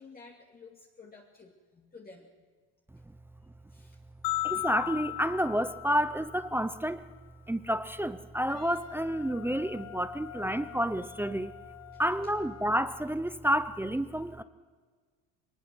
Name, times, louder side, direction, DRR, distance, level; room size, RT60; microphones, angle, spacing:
voice 1, 0.0-2.5 3.7-4.0 11.9-12.3, left 4 dB, 25° left, -2 dB, 2.4 m, -53 dB
sound 1, 4.2-6.6, left 18 dB, 75° left, 0.5 m, -35 dB
voice 2, 4.6-7.0 7.5-11.5 12.0-14.4, equal, 5° right, 11 dB, 0.7 m, -29 dB
Wind instrument woodwind instrument, 8.5-12.9, left 13 dB, 40° left, 1.8 m, -48 dB
22.0 x 20.0 x 6.2 m, 1.5 s
cardioid pair, 110°, 38 cm